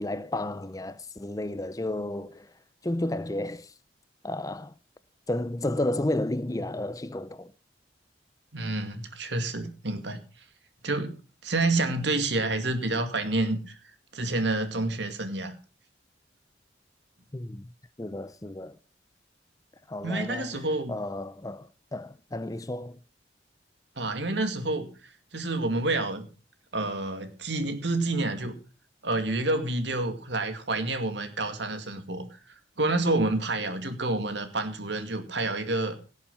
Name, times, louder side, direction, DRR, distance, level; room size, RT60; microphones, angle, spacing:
voice 1, 0.0-2.5 2.8-3.7 4.2-4.7 5.3-7.5 17.3-17.7 18.0-18.8 19.9-20.6 20.9-23.0, left 1 dB, 20° left, 0.5 m, -32 dB
voice 2, 8.5-10.2 10.8-11.2 11.4-13.8 14.1-15.5 20.0-20.9 24.0-26.3 26.7-28.6 29.0-36.0, right 2 dB, 70° right, 2.4 m, -29 dB
17.5 x 7.3 x 5.6 m
head